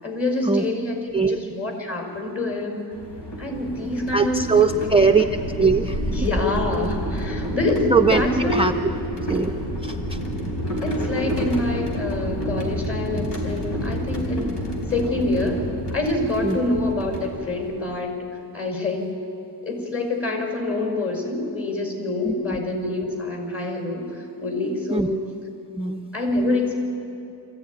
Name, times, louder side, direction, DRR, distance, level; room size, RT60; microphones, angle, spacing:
voice 1, 0.0-2.9 3.4-5.1 6.1-8.6 10.8-14.6 14.9-15.6 15.9-18.2 18.5-19.0 19.6-25.2 26.1-26.8, left 2 dB, 35° left, 2 dB, 5.2 m, -26 dB
sound 1, 2.9-17.9, equal, 80° left, 4.4 m, -29 dB
voice 2, 4.1-5.3 5.6-6.0 7.9-8.7 9.3-9.5 9.8-10.2 16.4-16.6 22.2-22.3 24.9-25.1 25.7-26.1, right 4 dB, 15° right, 4 dB, 0.5 m, -20 dB
24.5 x 15.5 x 9.6 m, 2.7 s
wide cardioid pair, 170°, 41 cm